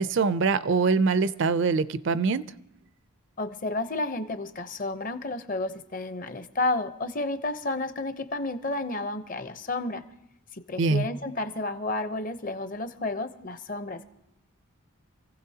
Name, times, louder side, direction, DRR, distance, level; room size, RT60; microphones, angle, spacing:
voice 1, 0.0-2.5 10.8-11.1, right 4 dB, 55° right, 15 dB, 0.4 m, -23 dB
voice 2, 3.4-10.0 10.5-14.0, left 2 dB, 40° left, 10 dB, 0.8 m, -31 dB
27.0 x 15.5 x 2.8 m, 0.85 s
head